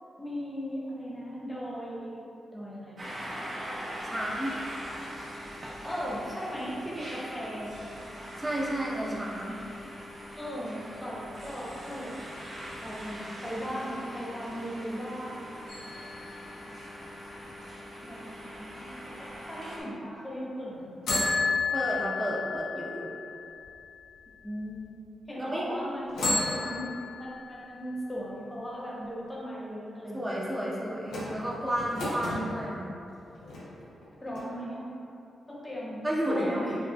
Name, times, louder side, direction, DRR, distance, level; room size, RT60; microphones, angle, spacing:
voice 1, 0.2-2.2 2.5-3.0 5.8-7.8 10.4-12.2 12.8-15.5 18.0-21.2 24.4-24.9 25.3-26.3 27.2-30.5 34.2-34.9 35.5-36.8, equal, 15° left, -6 dB, 1.0 m, -37 dB
sound 1, 3.0-19.8, equal, 50° right, 0.9 m, -42 dB
voice 2, 4.0-4.6 8.4-9.6 21.7-23.1 25.4-25.7 26.5-26.9 30.1-32.9 36.0-36.8, equal, 20° right, -4 dB, 0.8 m, -32 dB
sound 2, 15.7-17.5 21.1-24.2 24.7-24.8 26.1-27.9 31.1-32.5 33.1-34.0 34.3-34.4, left 3 dB, 85° left, 0.7 m, -32 dB
4.4 x 2.4 x 2.4 m, 2.7 s
supercardioid pair, 50°, 0 cm